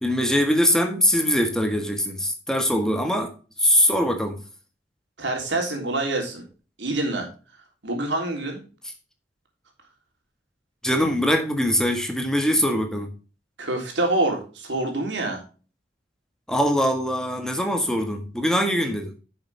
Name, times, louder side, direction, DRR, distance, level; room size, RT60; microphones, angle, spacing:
voice 1, 0.0-3.3 3.6-4.4 10.8-13.1 16.5-19.1, equal, 5° left, 4 dB, 1.6 m, -22 dB
voice 2, 5.2-6.4 6.8-7.3 7.8-8.6 13.6-15.4, right 2 dB, 85° right, 2 dB, 3.4 m, -26 dB
10.5 x 7.0 x 3.4 m, 0.36 s
head